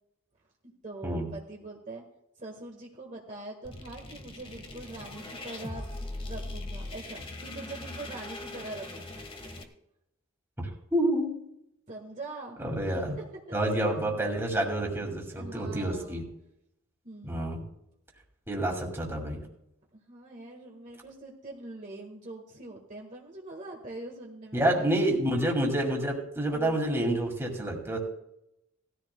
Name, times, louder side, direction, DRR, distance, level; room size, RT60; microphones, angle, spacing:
voice 1, 0.6-2.0 2.4-5.9 6.2-9.2 11.9-12.6 12.9-13.1 15.3-16.2 17.0-17.5 19.9-25.1, right 2 dB, 35° right, 0 dB, 1.6 m, -43 dB
sound 1, 3.6-9.6, left 2 dB, 25° left, 1.4 m, -40 dB
voice 2, 10.6-11.3 12.6-13.2 13.5-16.3 17.2-17.6 18.5-19.4 24.5-28.0, right 1 dB, 10° right, 0 dB, 2.4 m, -28 dB
19.0 x 14.0 x 2.3 m, 0.82 s
head